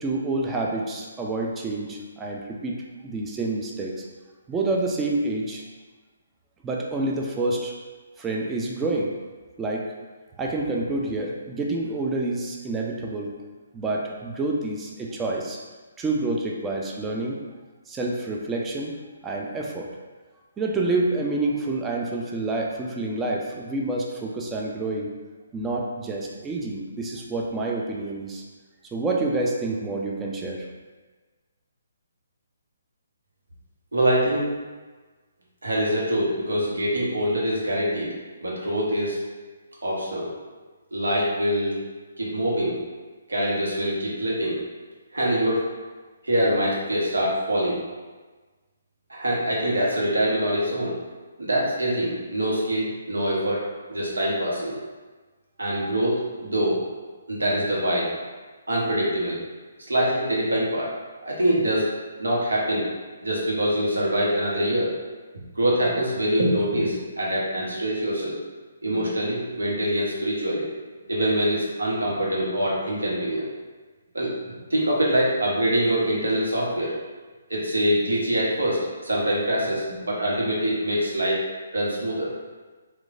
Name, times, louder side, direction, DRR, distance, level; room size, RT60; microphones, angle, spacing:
voice 1, 0.0-2.8 3.0-3.9 4.5-5.6 6.6-7.7 8.2-9.1 9.6-9.9 10.4-13.3 13.7-15.6 16.0-17.4 17.9-18.9 19.2-19.9 20.6-25.1 25.5-28.4 28.9-30.6, right 2 dB, 15° right, -1 dB, 0.3 m, -28 dB
voice 2, 33.9-34.5 35.6-38.1 38.4-39.2 39.8-40.3 40.9-41.8 42.2-42.8 43.3-44.6 45.1-45.7 46.2-47.8 49.1-51.0 51.4-53.6 53.9-54.7 55.6-56.8 57.3-58.1 58.7-59.4 59.9-60.9 61.2-61.9 62.2-62.9 63.2-64.9 65.6-68.4 68.8-70.7 71.1-73.5 74.1-74.3 74.7-76.9 77.5-81.4 81.7-82.3, equal, 80° right, -5 dB, 0.8 m, -24 dB
3.0 x 2.1 x 2.4 m, 1.3 s
figure-of-eight pair, 140°, 0 cm